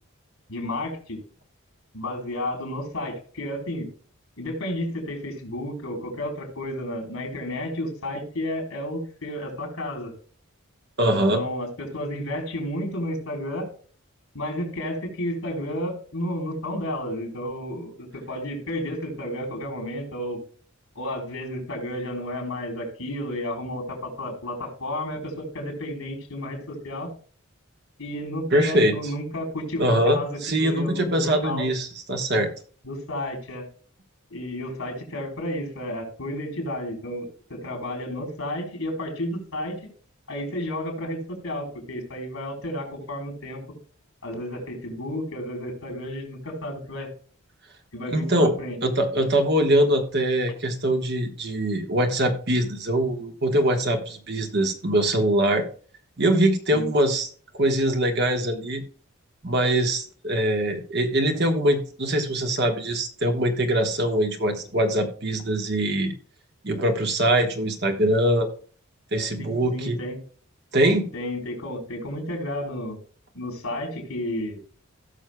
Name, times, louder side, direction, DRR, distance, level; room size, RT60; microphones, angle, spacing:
voice 1, 0.5-1.2 1.9-3.9 4.4-10.1 11.1-13.7 14.3-20.4 21.0-27.1 28.0-31.7 32.8-33.7 34.3-39.8 40.3-43.6 44.2-47.1 47.9-48.8 56.7-56.9 69.4-70.2 71.1-73.0 73.3-74.6, left 1 dB, 80° left, 2 dB, 3.8 m, -32 dB
voice 2, 11.0-11.4 28.5-28.9 29.8-32.5 48.1-48.5 48.8-55.6 56.2-57.3 57.5-58.8 59.4-66.1 66.6-68.5 69.1-70.0 70.7-71.1, right 1 dB, 50° right, 4 dB, 1.3 m, -23 dB
17.0 x 6.3 x 2.2 m, 0.44 s
head